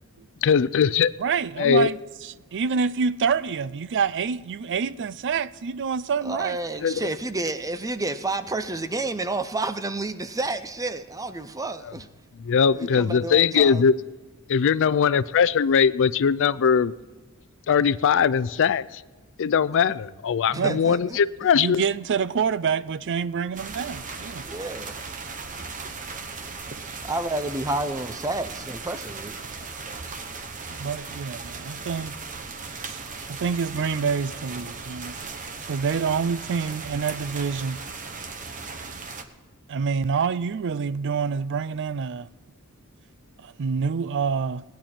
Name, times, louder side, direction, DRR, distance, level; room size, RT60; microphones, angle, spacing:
voice 1, 0.4-1.1 1.6-1.9 6.8-7.0 12.4-13.9 14.5-16.9 17.7-19.0 19.4-21.8, left 6 dB, 60° left, 0.4 m, -20 dB
voice 2, 1.2-6.6 20.5-20.8 21.5-24.4 30.8-32.1 32.8-33.0 33.3-35.2 35.7-37.8 39.7-42.3 43.4-44.6, right 6 dB, 55° right, 0.4 m, -27 dB
voice 3, 6.2-12.1 12.7-13.9 20.5-21.2 24.4-24.9 27.0-29.3, right 2 dB, 15° right, 0.6 m, -30 dB
sound 1, 23.6-39.2, right 4 dB, 35° right, 1.0 m, -37 dB
18.0 x 10.5 x 4.4 m
head